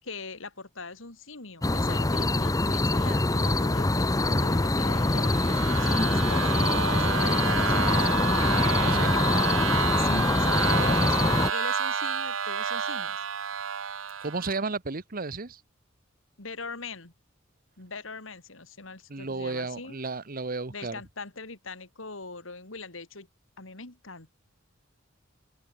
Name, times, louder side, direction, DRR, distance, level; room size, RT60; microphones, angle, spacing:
voice 1, 0.0-8.1 10.0-13.3 16.4-17.1 17.8-20.0 20.7-23.3 23.6-24.4, left 3 dB, 80° left, 3.2 m, -41 dB
sound 1, 1.6-11.5, left 2 dB, 20° left, 0.7 m, -24 dB
sound 2, 4.9-14.6, right 6 dB, 80° right, 1.2 m, -30 dB
voice 2, 8.8-9.2 14.2-15.6 19.1-21.0, right 3 dB, 45° right, 1.3 m, -33 dB
open air
head